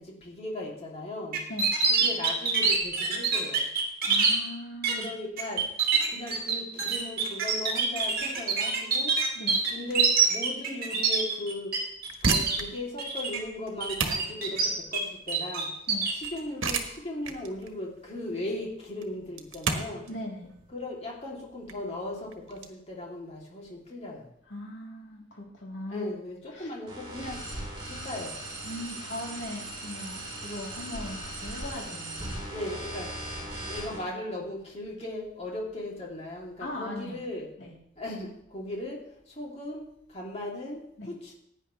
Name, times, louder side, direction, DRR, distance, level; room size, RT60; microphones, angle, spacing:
voice 1, 0.0-1.4 1.9-3.6 5.0-5.7 6.1-9.1 9.7-11.8 12.2-15.7 16.1-20.0 20.7-24.2 25.9-27.4 27.9-28.3 32.5-33.1 33.6-37.5 38.0-39.0 39.4-39.9 40.1-41.3, left 1 dB, 30° left, -3 dB, 3.1 m, -37 dB
sound 1, 1.3-4.3 4.8-5.1 5.4-11.8 12.0-12.6 13.0-13.4 13.8-15.0 15.3-16.3, right 5 dB, 45° right, 2.4 m, -25 dB
voice 2, 4.0-5.1 9.3-9.6 15.9-16.1 20.1-20.5 24.5-26.1 26.5-26.7 28.6-32.3 36.6-37.2 37.6-37.8 41.0-41.1, left 1 dB, 65° left, -2 dB, 3.5 m, -39 dB
sound 2, 11.9-22.7, right 4 dB, 75° right, 1.4 m, -34 dB
sound 3, 26.9-34.0, right 1 dB, 25° right, 4.4 m, -38 dB
16.0 x 9.8 x 3.3 m, 0.72 s
head